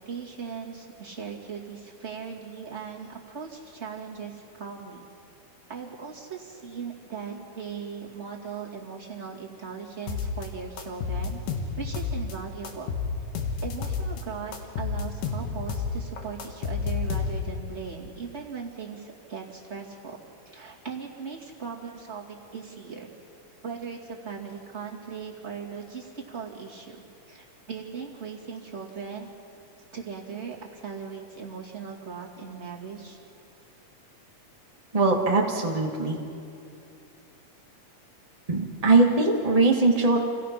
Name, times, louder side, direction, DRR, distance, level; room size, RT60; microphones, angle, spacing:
voice 1, 0.1-5.1 5.7-11.4 11.8-12.9 13.6-20.2 20.5-23.2 23.6-29.3 29.9-33.2, right 6 dB, 25° right, -3 dB, 2.3 m, -38 dB
sound 1, 10.1-10.5 10.8-12.3 12.6-14.2 14.5-17.6, left 5 dB, 80° left, 3.1 m, -30 dB
voice 2, 34.9-36.2 38.5-40.2, right 3 dB, 65° right, 0 dB, 0.3 m, -21 dB
28.0 x 16.5 x 5.9 m, 2.5 s
omnidirectional pair, 3.7 m